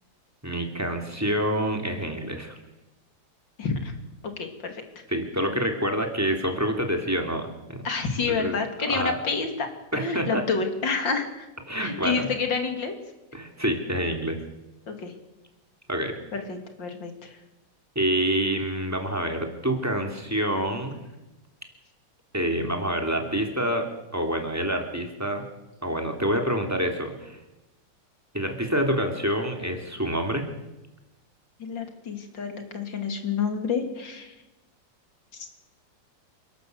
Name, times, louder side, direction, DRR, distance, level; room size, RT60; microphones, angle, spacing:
voice 1, 0.4-2.6 5.1-7.9 8.3-8.6 8.9-9.2 9.9-10.4 11.7-12.3 13.3-14.4 15.9-16.1 17.9-21.0 22.3-25.4 25.8-27.4 28.3-30.5, equal, 10° right, 4 dB, 3.1 m, -27 dB
voice 2, 3.6-3.9 4.2-4.8 7.8-9.7 9.9-11.5 11.8-13.0 14.9-15.1 16.3-17.4 31.6-34.3 35.4-35.5, left 5 dB, 75° left, 5 dB, 3.4 m, -29 dB
28.5 x 12.0 x 8.0 m, 0.99 s
omnidirectional pair, 2.0 m